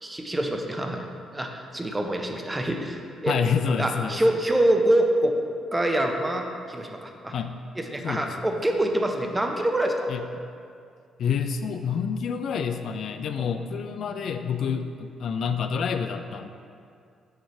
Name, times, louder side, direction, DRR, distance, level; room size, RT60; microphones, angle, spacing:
voice 1, 0.0-1.1 1.3-3.4 3.8-5.4 5.7-7.3 7.8-10.1 13.4-13.5, right 1 dB, 15° right, 3 dB, 0.7 m, -25 dB
voice 2, 3.3-4.2 7.3-7.5 8.0-8.5 10.1-10.2 11.2-16.5, left 6 dB, 65° left, 8 dB, 0.3 m, -28 dB
6.5 x 3.1 x 5.7 m, 2.3 s
cardioid pair, 90°, 0 cm